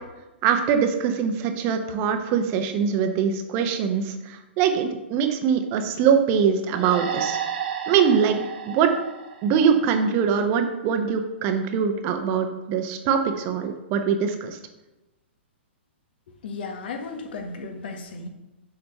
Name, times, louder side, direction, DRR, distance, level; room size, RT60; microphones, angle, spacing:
voice 1, 0.4-7.4 7.9-8.9 9.4-14.6, right 7 dB, 35° right, 6 dB, 1.0 m, -23 dB
sound 1, 6.7-10.2, right 7 dB, 50° right, 1.1 m, -32 dB
voice 2, 16.4-18.3, left 4 dB, 55° left, 5 dB, 1.3 m, -34 dB
7.2 x 5.1 x 5.5 m, 1.0 s
figure-of-eight pair, 115°, 6 cm